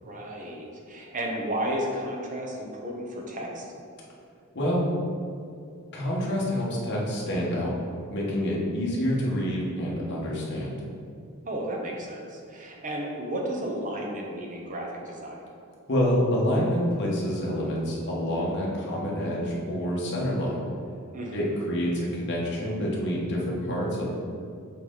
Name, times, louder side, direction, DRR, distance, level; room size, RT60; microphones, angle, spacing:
voice 1, 0.0-3.7 11.5-15.4 21.1-21.5, right 1 dB, 35° right, -1 dB, 0.8 m, -33 dB
voice 2, 5.9-7.7 8.1-10.8 15.9-20.6 21.3-24.0, equal, 55° left, -5 dB, 1.4 m, -27 dB
7.6 x 3.8 x 3.9 m, 2.5 s
head